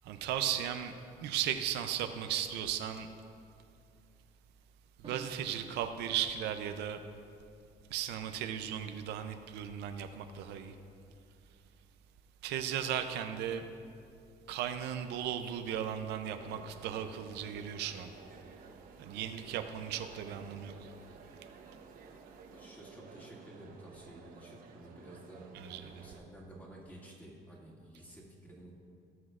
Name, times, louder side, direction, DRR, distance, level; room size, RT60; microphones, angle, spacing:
voice 1, 0.0-3.1 5.0-7.0 7.9-10.7 12.4-13.7 14.5-18.1 19.0-20.9 25.5-26.0, right 9 dB, 85° right, 7 dB, 0.5 m, -36 dB
Drum, 5.0-7.1, right 4 dB, 35° right, 1.7 m, -53 dB
Crowd, 16.2-26.2, right 5 dB, 60° right, 0.9 m, -54 dB
voice 2, 22.5-28.7, right 1 dB, 10° left, -4 dB, 2.3 m, -52 dB
18.0 x 6.3 x 2.5 m, 2.5 s
cardioid pair, 110°, 17 cm